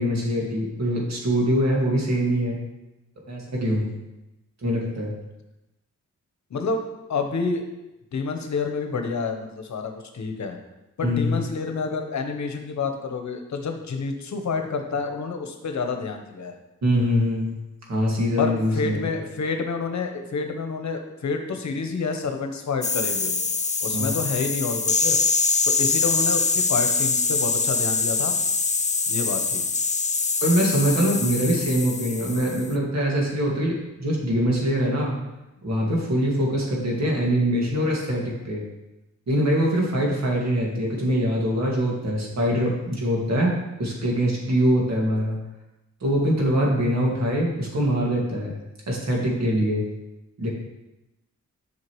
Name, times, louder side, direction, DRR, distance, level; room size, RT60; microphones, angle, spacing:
voice 1, 0.0-2.6 3.3-3.9 4.6-5.1 11.0-11.4 16.8-17.6 17.9-19.1 23.9-24.2 30.4-35.2 35.6-38.6 39.3-45.4 46.0-48.5 48.9-49.8 50.4-50.5, equal, 60° right, -2 dB, 2.1 m, -23 dB
voice 2, 6.5-6.8 7.1-7.6 8.1-10.6 11.0-16.6 18.4-23.4 23.8-25.2 25.6-28.3 29.1-29.7, left 4 dB, 70° left, 5 dB, 0.9 m, -28 dB
sound 1, 22.8-32.7, left 4 dB, 25° left, 0.5 m, -24 dB
7.6 x 5.7 x 3.1 m, 0.97 s
cardioid pair, 60°, 30 cm